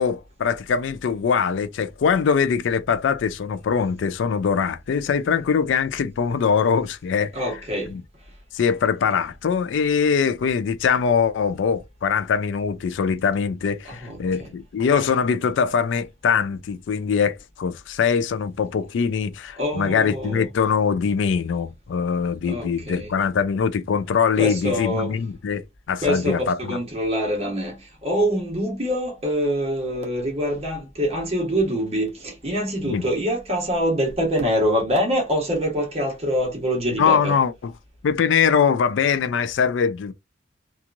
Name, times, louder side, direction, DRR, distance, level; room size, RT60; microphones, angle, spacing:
voice 1, 0.0-7.3 7.9-8.0 8.5-26.8 32.8-33.0 36.9-37.7 38.0-40.1, left 6 dB, 70° left, 0.3 m, -22 dB
voice 2, 7.3-7.9 13.9-14.5 19.6-20.5 22.4-23.1 24.4-25.1 26.0-37.3, equal, 30° right, 1.1 m, -25 dB
2.9 x 2.4 x 2.5 m
head